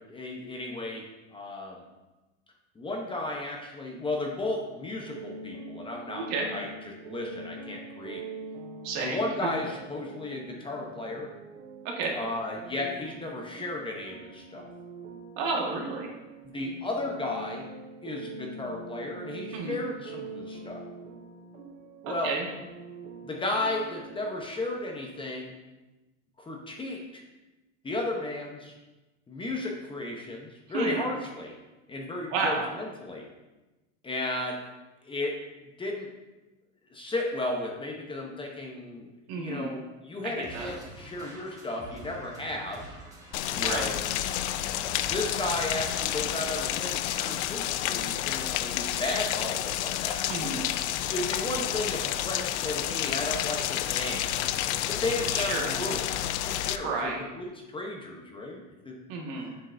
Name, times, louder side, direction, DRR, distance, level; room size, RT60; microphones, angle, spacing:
voice 1, 0.0-1.8 2.7-8.2 9.0-11.3 12.1-14.7 16.4-17.7 18.0-20.9 22.0-22.4 23.2-25.5 26.4-27.2 27.8-28.7 29.3-31.5 31.9-33.3 34.0-34.7 35.0-35.4 35.8-36.1 36.9-42.8 43.5-44.0 45.0-50.6 51.1-54.3 54.9-56.1 56.5-59.0 59.5-59.6, left 2 dB, 15° left, 0 dB, 0.9 m, -34 dB
sound 1, 4.6-24.4, right 3 dB, 80° right, 0.9 m, -44 dB
voice 2, 8.8-9.2 11.8-12.2 15.4-16.1 19.5-19.8 22.2-22.5 30.7-31.0 32.3-32.7 39.3-39.7 40.2-40.7 43.6-43.9 50.3-50.6 55.3-55.7 56.8-57.2 59.1-59.5, right 3 dB, 60° right, 0 dB, 1.7 m, -31 dB
sound 2, 40.4-46.6, right 1 dB, 10° right, 1.5 m, -46 dB
Rain, 43.3-56.8, left 12 dB, 80° left, 0.5 m, -30 dB
7.7 x 6.2 x 2.6 m, 1.1 s
supercardioid pair, 120°, 34 cm